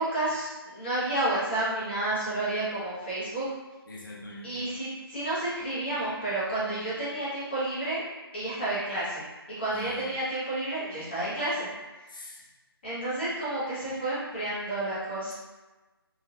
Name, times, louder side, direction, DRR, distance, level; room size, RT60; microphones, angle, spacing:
voice 1, 0.0-3.5 4.4-8.0 8.3-9.3 9.6-11.7 12.8-15.3, right 1 dB, 25° left, -9 dB, 0.9 m, -30 dB
voice 2, 3.9-4.7 9.7-10.1 12.1-12.4, left 1 dB, 55° left, -2 dB, 0.7 m, -43 dB
3.2 x 2.4 x 2.3 m, 1.2 s
figure-of-eight pair, 170°, 13 cm